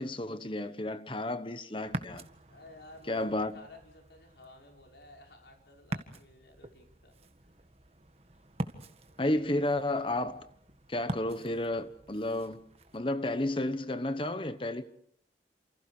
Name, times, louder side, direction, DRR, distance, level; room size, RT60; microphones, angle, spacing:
voice 1, 0.0-2.3 3.1-3.5 9.2-10.4 10.9-12.6 12.9-14.9, left 1 dB, 30° left, 1.1 m, -32 dB
Ocean, 1.8-13.0, right 1 dB, 35° right, 1.7 m, -44 dB
voice 2, 2.5-7.1 7.5-7.6, left 2 dB, 75° left, 5.6 m, -54 dB
29.5 x 27.5 x 5.0 m
head